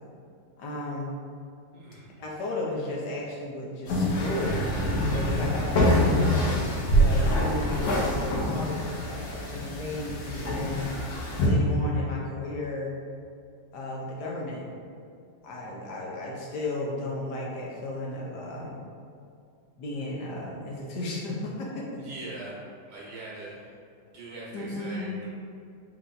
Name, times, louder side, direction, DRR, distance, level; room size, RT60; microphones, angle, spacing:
voice 1, 0.6-1.1 2.2-4.7 5.1-6.5 7.0-10.9 11.4-13.0 13.7-14.7 15.4-18.8 19.8-22.0 24.5-25.1, left 1 dB, 70° left, -3 dB, 1.2 m, -34 dB
voice 2, 1.7-2.2 5.2-5.4 21.9-22.6 22.9-23.5 24.1-25.3, right 2 dB, 75° right, -6 dB, 1.9 m, -42 dB
sound 1, 3.9-11.5, equal, 90° left, 1.7 m, -25 dB
4.7 x 3.0 x 3.8 m, 2.4 s
omnidirectional pair, 2.0 m